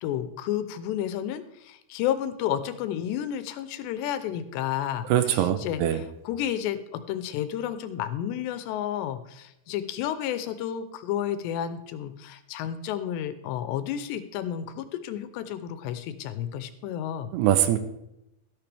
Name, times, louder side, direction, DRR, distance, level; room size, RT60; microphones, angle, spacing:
voice 1, 0.0-17.3, left 10 dB, 80° left, 11 dB, 2.8 m, -31 dB
voice 2, 5.1-6.0 17.3-17.8, right 11 dB, 85° right, 10 dB, 2.7 m, -22 dB
12.0 x 12.0 x 3.4 m, 0.86 s
omnidirectional pair, 5.0 m